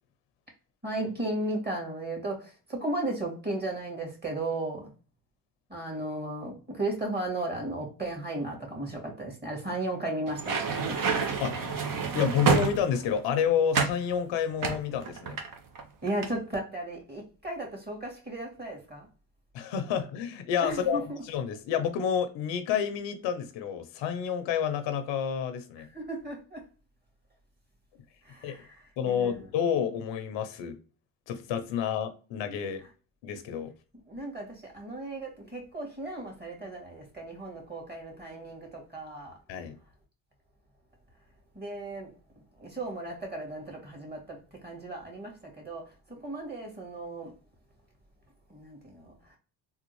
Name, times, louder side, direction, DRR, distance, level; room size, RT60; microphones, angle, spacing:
voice 1, 0.8-4.9 5.7-11.0 16.0-19.1 20.6-21.2 25.8-26.7 28.2-29.5 32.8-32.9 33.9-39.4 39.8-39.9 41.5-47.3 48.5-49.4, right 2 dB, 20° right, 1.9 m, -35 dB
sound 1, 10.3-13.2 13.7-14.0 14.6-15.8 16.1-16.3, right 5 dB, 50° right, 0.8 m, -28 dB
voice 2, 12.1-15.4 19.5-25.9 28.4-28.6 29.0-30.8 31.3-32.8 33.2-33.7 39.5-39.8, left 8 dB, 80° left, 0.7 m, -29 dB
3.5 x 2.4 x 3.0 m
supercardioid pair, 75°, 44 cm